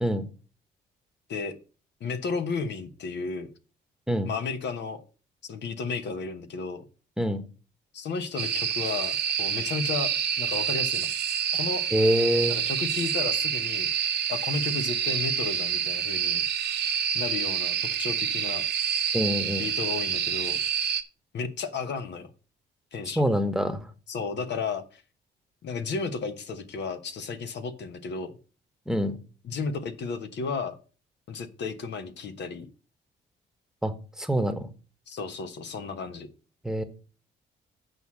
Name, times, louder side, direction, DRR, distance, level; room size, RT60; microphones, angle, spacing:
voice 1, 2.0-3.5 4.2-5.0 5.4-6.8 7.9-10.1 10.4-11.1 11.5-11.8 12.5-16.4 17.1-18.6 19.6-20.6 21.3-22.3 22.9-23.3 24.1-25.0 25.6-28.4 29.4-30.8 31.3-32.7 35.1-36.3, left 4 dB, 60° left, 9 dB, 1.1 m, -33 dB
sound 1, 8.4-21.0, right 8 dB, 55° right, 1.0 m, -28 dB
voice 2, 11.9-12.6 19.1-19.7 23.2-23.8 28.9-29.2 33.8-34.7 36.6-36.8, equal, 5° right, 9 dB, 1.2 m, -25 dB
8.0 x 4.8 x 7.2 m, 0.37 s
cardioid pair, 90°, 20 cm